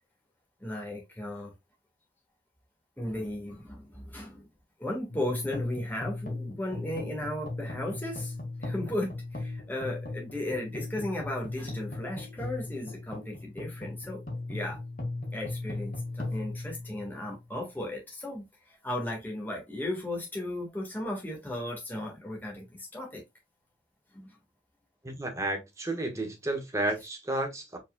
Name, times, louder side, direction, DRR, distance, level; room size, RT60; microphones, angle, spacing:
voice 1, 0.6-1.5 3.0-4.5 4.8-8.3 8.6-14.2 14.5-14.8 15.3-18.4 18.8-23.2 24.1-24.3, left 1 dB, 10° left, 1.5 m, -35 dB
sound 1, 5.1-17.5, left 2 dB, 50° left, 1.5 m, -38 dB
voice 2, 25.0-27.8, right 2 dB, 15° right, 1.1 m, -32 dB
4.8 x 4.1 x 2.2 m
head